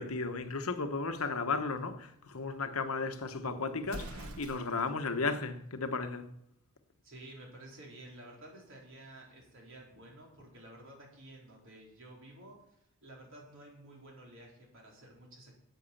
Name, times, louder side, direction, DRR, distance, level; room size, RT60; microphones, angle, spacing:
voice 1, 0.0-6.3, left 4 dB, 70° left, 1.1 m, -34 dB
Explosion, 3.8-5.0, right 1 dB, 80° right, 1.4 m, -44 dB
voice 2, 7.0-15.6, right 1 dB, 60° right, 4.2 m, -52 dB
10.5 x 8.0 x 7.2 m
head